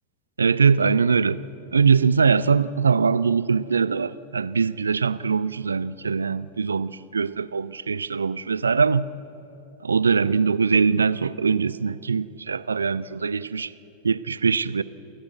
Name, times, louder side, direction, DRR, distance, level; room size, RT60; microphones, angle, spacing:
voice 1, 0.4-1.4 1.7-9.1 9.8-13.7 14.0-14.8, right 5 dB, 75° right, 0.5 m, -22 dB
28.5 x 14.0 x 9.2 m
figure-of-eight pair, 90°, 0 cm